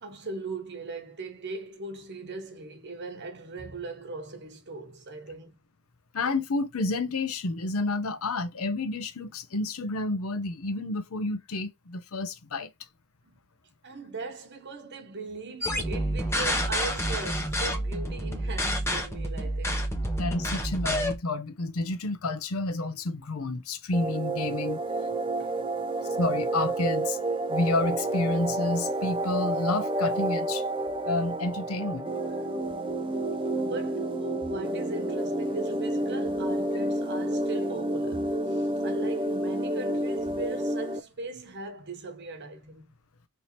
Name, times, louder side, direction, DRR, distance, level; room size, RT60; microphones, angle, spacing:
voice 1, 0.0-5.5 13.3-13.4 13.8-19.9 25.4-25.6 33.6-42.9, right 3 dB, 50° right, 1.0 m, -39 dB
voice 2, 6.1-12.7 20.2-24.8 26.2-27.2 27.5-30.6 31.0-32.1, left 2 dB, 80° left, 0.7 m, -30 dB
sound 1, 15.6-21.2, equal, 10° left, 0.8 m, -29 dB
sound 2, 23.9-41.0, right 1 dB, 25° right, 0.5 m, -29 dB
3.4 x 2.8 x 4.2 m
head